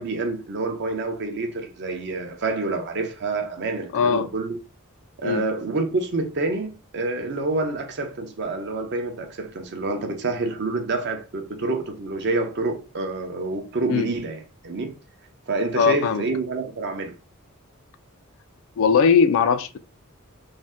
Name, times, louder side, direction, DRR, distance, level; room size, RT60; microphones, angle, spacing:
voice 1, 0.0-4.6 5.2-15.0 15.5-17.1, right 3 dB, 50° right, 0.6 m, -27 dB
voice 2, 3.9-4.3 5.2-5.4 13.9-14.1 15.8-16.3 18.8-19.8, left 6 dB, 60° left, 0.3 m, -19 dB
2.6 x 2.1 x 3.3 m
head